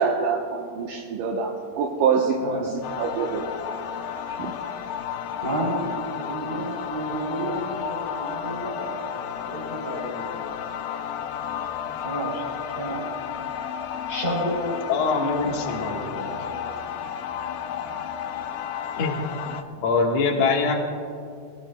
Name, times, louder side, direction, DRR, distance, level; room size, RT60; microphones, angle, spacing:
voice 1, 0.0-3.5 4.4-4.5, right 5 dB, 75° right, 2.1 m, -25 dB
voice 2, 2.4-2.7 5.4-5.8 6.2-10.6 11.8-12.4 12.8-13.2 13.6-13.7 14.1-16.6, right 1 dB, 15° right, 2.5 m, -32 dB
sound 1, 2.8-19.6, left 8 dB, 80° left, 2.5 m, -32 dB
voice 3, 14.9-16.3 19.0-19.3 19.8-20.7, left 4 dB, 55° left, 2.0 m, -24 dB
22.5 x 17.5 x 2.2 m
omnidirectional pair, 4.5 m